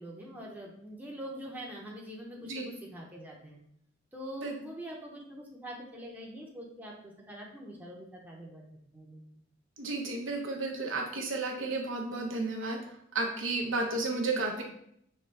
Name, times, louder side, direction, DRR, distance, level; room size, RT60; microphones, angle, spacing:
voice 1, 0.0-3.6 4.1-8.6 8.9-9.2, equal, 10° right, -3 dB, 0.7 m, -44 dB
voice 2, 9.8-12.8 13.1-14.6, right 3 dB, 90° right, 0 dB, 0.9 m, -32 dB
5.5 x 2.5 x 3.2 m, 0.72 s
head